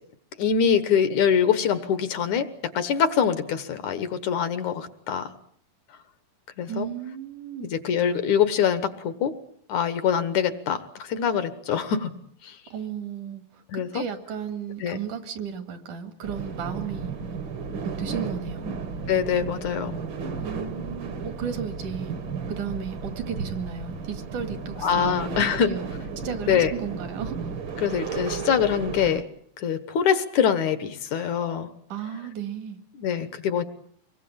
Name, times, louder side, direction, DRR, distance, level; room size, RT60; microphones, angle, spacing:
voice 1, 0.4-2.5 2.7-5.3 6.6-6.9 7.6-9.3 9.7-12.1 12.4-12.6 13.7-14.0 14.8-15.0 19.1-20.0 24.8-25.7 26.5-26.7 27.8-29.2 29.6-31.7 33.0-33.6, left 8 dB, 65° left, 11 dB, 2.5 m, -24 dB
voice 2, 6.7-7.7 12.7-13.6 13.9-17.2 17.8-18.7 20.4-22.1 22.5-25.9 26.2-27.4 31.9-32.8, right 7 dB, 65° right, 8 dB, 3.4 m, -34 dB
sound 1, 16.2-29.2, right 5 dB, 45° right, 1.9 m, -34 dB
25.5 x 21.5 x 8.7 m, 0.64 s
omnidirectional pair, 3.9 m